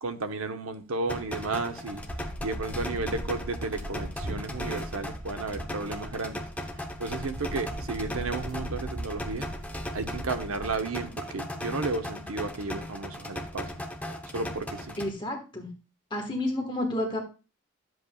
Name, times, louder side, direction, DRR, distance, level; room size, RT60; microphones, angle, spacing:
voice 1, 0.0-2.0 2.4-6.4 7.0-9.5 9.9-13.7 14.3-15.0, right 3 dB, 80° right, 0.8 m, -33 dB
sound 1, 1.1-15.1, left 1 dB, 5° left, 0.8 m, -38 dB
sound 2, 1.9-10.7, equal, 35° right, 1.3 m, -39 dB
voice 2, 15.0-15.7 16.1-17.2, left 1 dB, 20° left, 1.4 m, -30 dB
11.5 x 7.8 x 2.3 m
head